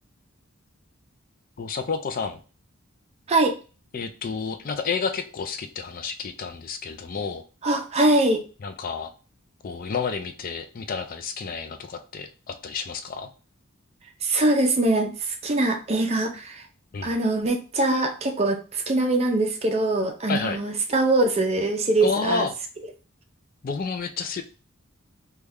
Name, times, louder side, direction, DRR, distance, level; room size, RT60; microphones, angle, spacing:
voice 1, 1.6-2.4 3.9-7.4 8.6-9.1 9.6-13.3 16.9-17.1 20.3-20.6 22.0-22.5 23.6-24.4, left 5 dB, 40° left, 7 dB, 0.4 m, -30 dB
voice 2, 7.6-8.4 14.2-16.6 17.0-22.5, right 2 dB, 30° right, 5 dB, 0.4 m, -23 dB
3.2 x 2.3 x 3.5 m, 0.35 s
head